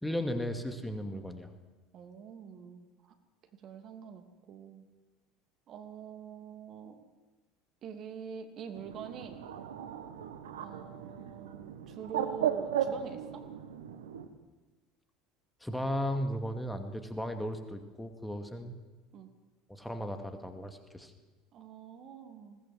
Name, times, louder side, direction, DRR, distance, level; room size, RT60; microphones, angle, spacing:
voice 1, 0.0-1.5 15.6-18.7 19.7-21.1, equal, 5° left, 6 dB, 2.3 m, -35 dB
voice 2, 1.9-3.1 3.5-4.9 5.7-7.0 7.8-9.5 10.6-13.5 19.1-19.3 21.5-22.6, right 7 dB, 45° right, 7 dB, 2.7 m, -45 dB
Bird, 8.8-14.3, right 9 dB, 75° right, 1.4 m, -36 dB
21.0 x 18.5 x 7.7 m, 1.2 s
figure-of-eight pair, 70°, 0 cm